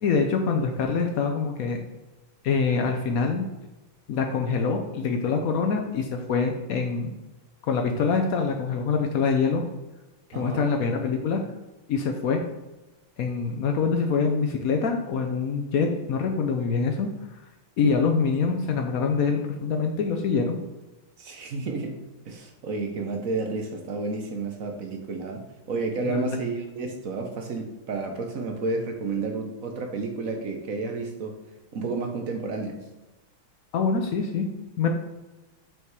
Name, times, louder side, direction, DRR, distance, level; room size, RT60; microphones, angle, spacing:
voice 1, 0.0-1.8 2.4-3.4 4.1-7.1 7.6-9.6 10.3-11.4 11.9-12.4 13.2-17.1 17.8-20.6 26.0-26.4 33.7-34.5 34.8-34.9, left 5 dB, 90° left, 3 dB, 0.7 m, -25 dB
voice 2, 10.3-10.7 21.2-22.0 22.2-31.3 31.7-32.8, right 3 dB, 55° right, 3 dB, 1.0 m, -31 dB
5.9 x 5.6 x 4.7 m, 1.1 s
omnidirectional pair, 2.4 m